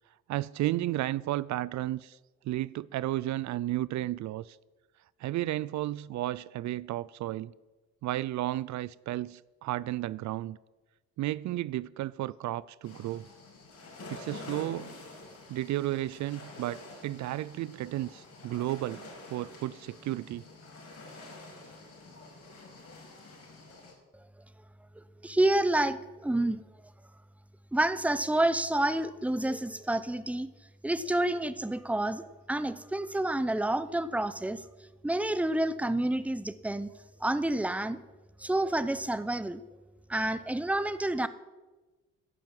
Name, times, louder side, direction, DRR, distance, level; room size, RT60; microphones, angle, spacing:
voice 1, 0.3-2.2 2.4-4.6 5.2-7.5 8.0-10.6 11.2-13.3 14.1-14.9 15.5-20.4, right 15 dB, 70° right, 0.4 m, -33 dB
sound 1, 12.8-23.9, left 2 dB, 55° left, 5.9 m, -48 dB
voice 2, 25.2-26.6 27.7-30.5 30.8-34.6 35.0-36.9 37.2-38.0 38.4-39.6 40.1-41.3, right 1 dB, 5° right, 0.8 m, -29 dB
11.0 x 10.5 x 7.7 m
cardioid pair, 90°, 30 cm